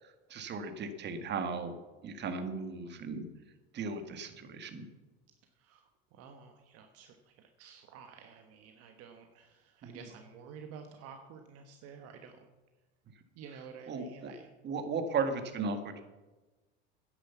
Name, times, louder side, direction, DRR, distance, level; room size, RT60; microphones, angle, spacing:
voice 1, 0.3-1.8 2.0-3.2 3.7-4.8 9.8-10.0 13.9-14.3 14.6-15.9, right 4 dB, 35° right, 7 dB, 1.9 m, -36 dB
voice 2, 5.5-12.5 13.3-14.5, right 6 dB, 55° right, 5 dB, 1.4 m, -51 dB
10.0 x 9.9 x 7.1 m, 1.2 s
supercardioid pair, 105°, 29 cm